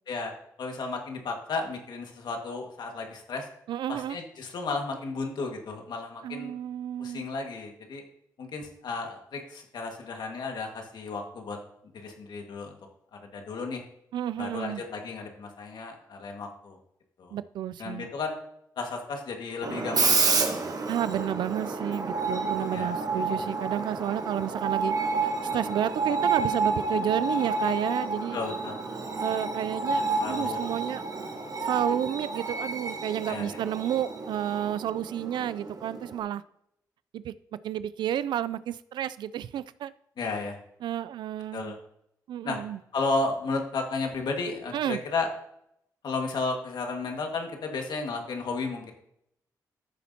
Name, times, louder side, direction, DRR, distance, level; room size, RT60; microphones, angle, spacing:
voice 1, 0.6-3.5 3.9-6.5 7.0-8.0 8.4-11.6 11.9-12.8 13.3-13.8 14.4-16.8 17.2-17.4 17.8-18.4 18.8-20.7 22.7-23.0 28.3-28.8 30.2-30.6 33.3-33.6 40.2-40.6 41.5-41.8 42.4-42.6 42.9-45.3 46.0-48.9, left 3 dB, 70° left, 3 dB, 1.8 m, -33 dB
voice 2, 3.7-4.2 6.2-7.3 14.1-14.8 17.3-18.1 20.9-24.9 25.2-28.4 29.2-31.0 31.6-36.4 37.1-37.3 37.6-39.9 40.8-41.7 42.3-42.8 44.7-45.0, right 11 dB, 80° right, 17 dB, 0.3 m, -31 dB
Screech, 19.6-36.2, right 4 dB, 55° right, 1.4 m, -30 dB
13.5 x 7.1 x 2.9 m, 0.75 s
cardioid pair, 60°, 8 cm